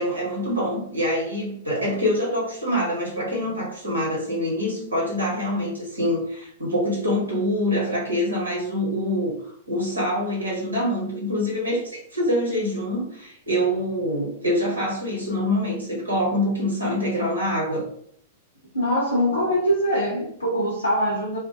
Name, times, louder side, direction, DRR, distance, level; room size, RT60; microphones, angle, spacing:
voice 1, 0.0-17.9, equal, 85° right, -3 dB, 1.0 m, -25 dB
voice 2, 18.7-21.4, equal, 80° left, -4 dB, 0.6 m, -23 dB
2.3 x 2.1 x 2.8 m, 0.66 s
figure-of-eight pair, 100°, 0 cm